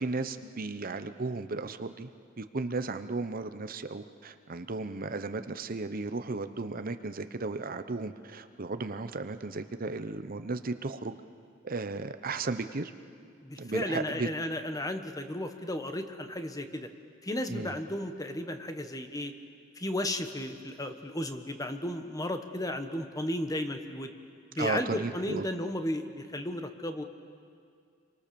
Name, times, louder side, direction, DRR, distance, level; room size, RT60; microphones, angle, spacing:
voice 1, 0.0-2.1 2.4-11.1 11.6-12.9 13.6-14.3 17.5-17.7 24.5-25.5, right 3 dB, 45° right, 10 dB, 0.9 m, -35 dB
voice 2, 13.4-16.9 17.2-19.3 19.8-24.1 24.5-27.0, left 1 dB, 20° left, 7 dB, 1.3 m, -34 dB
29.5 x 24.5 x 7.0 m, 2.2 s
head